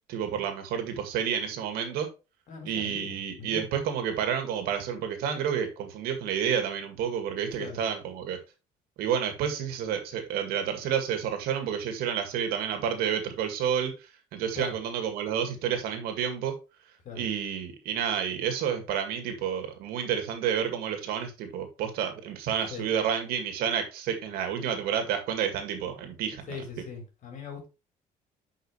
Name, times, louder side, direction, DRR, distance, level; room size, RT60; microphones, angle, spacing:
voice 1, 0.1-2.1 2.7-8.4 9.0-16.5 17.2-26.5, right 8 dB, 80° right, 2.0 m, -30 dB
voice 2, 2.5-3.6 7.6-7.8 14.6-14.8 17.0-17.3 22.7-22.9 26.5-27.7, left 5 dB, 55° left, 3.8 m, -40 dB
8.9 x 5.5 x 3.2 m
cardioid pair, 95°, 16 cm